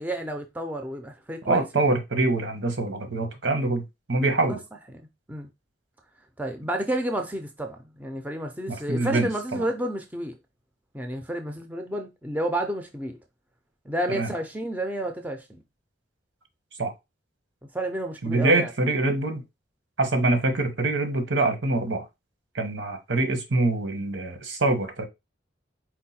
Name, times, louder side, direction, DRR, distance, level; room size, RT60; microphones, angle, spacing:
voice 1, 0.0-1.9 4.5-4.6 5.3-5.5 6.4-10.4 10.9-13.2 13.8-15.6 17.7-18.7, right 1 dB, 10° right, 0.5 m, -30 dB
voice 2, 1.4-3.8 4.1-4.6 8.7-9.6 14.1-14.3 16.8-16.9 18.2-19.4 20.0-22.0 22.5-25.0, right 2 dB, 80° right, 1.0 m, -24 dB
4.5 x 2.2 x 4.2 m
head